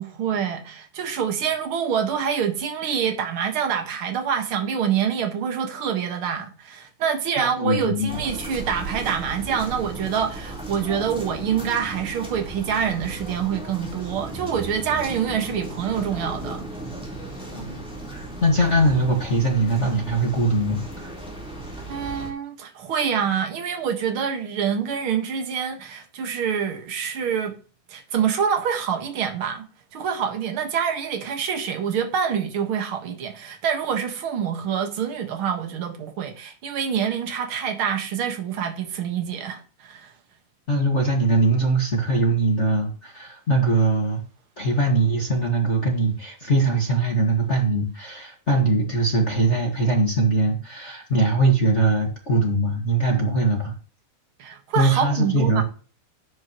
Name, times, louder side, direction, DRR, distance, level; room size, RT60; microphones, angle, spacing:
voice 1, 0.0-16.6 21.9-27.6 27.9-29.6 29.9-40.1 53.1-53.4 54.4-55.6, right 7 dB, 60° right, 1.4 m, -26 dB
voice 2, 7.4-8.2 17.5-21.1 40.7-44.2 44.6-53.7 54.7-55.6, right 2 dB, 50° left, 0.8 m, -21 dB
sound 1, 8.1-22.3, right 2 dB, ahead, 3.1 m, -36 dB
12.0 x 9.2 x 3.0 m
omnidirectional pair, 4.6 m